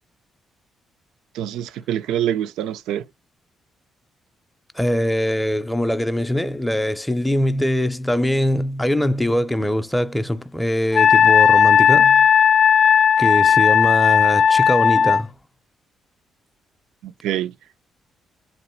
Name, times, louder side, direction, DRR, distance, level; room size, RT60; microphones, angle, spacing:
voice 1, 1.3-3.0 17.0-17.5, right 11 dB, 90° right, 0.4 m, -25 dB
voice 2, 4.8-12.3 13.2-15.3, left 1 dB, 5° left, 0.5 m, -22 dB
Wind instrument woodwind instrument, 10.9-15.2, left 7 dB, 65° left, 0.3 m, -15 dB
3.0 x 3.0 x 4.3 m
cardioid pair, 90°, 0 cm